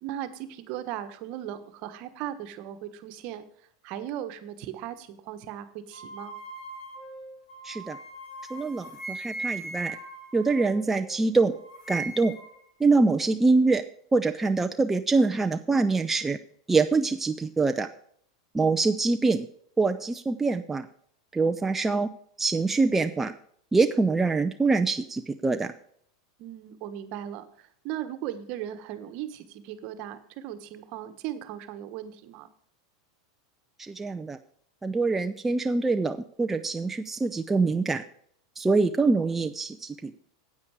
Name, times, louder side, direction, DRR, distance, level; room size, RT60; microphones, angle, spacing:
voice 1, 0.0-3.4 3.8-6.3 26.4-32.5, right 11 dB, 55° right, 10 dB, 1.3 m, -37 dB
sound 1, 5.9-11.2 11.5-12.6, right 2 dB, 30° left, 4.4 m, -39 dB
voice 2, 7.6-8.0 8.5-10.0 10.3-11.5 11.9-12.3 12.8-13.8 14.1-16.4 16.7-17.9 18.5-19.5 19.8-20.9 21.3-22.1 22.4-23.3 23.7-25.7 33.8-34.4 34.8-38.0 38.6-40.1, right 3 dB, 10° right, 7 dB, 0.5 m, -24 dB
9.6 x 8.6 x 4.8 m, 0.63 s
hypercardioid pair, 110°, 2 cm